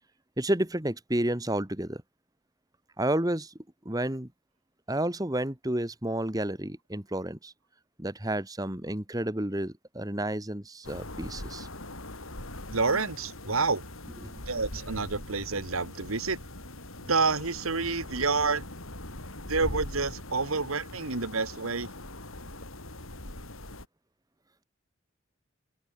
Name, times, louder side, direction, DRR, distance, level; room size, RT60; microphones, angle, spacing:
voice 1, 0.4-2.0 3.0-3.5 3.8-4.3 4.9-7.5 8.0-11.7 14.2-14.3, right 1 dB, 15° right, 1.6 m, -30 dB
sound 1, 10.8-23.9, left 1 dB, 75° left, 7.2 m, -41 dB
voice 2, 12.7-13.8 14.5-16.4 17.0-18.6 19.5-21.9, right 4 dB, 85° right, 2.1 m, -28 dB
head